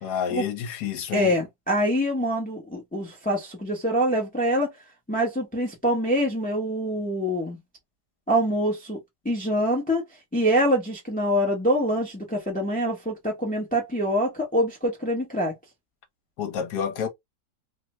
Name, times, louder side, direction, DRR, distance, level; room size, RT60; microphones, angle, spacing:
voice 1, 0.0-1.3 16.4-17.1, left 7 dB, 70° left, 1.4 m, -29 dB
voice 2, 1.1-4.7 5.1-7.6 8.3-9.0 9.2-10.0 10.3-15.5, equal, 10° left, 0.6 m, -25 dB
3.3 x 2.1 x 3.0 m
omnidirectional pair, 1.9 m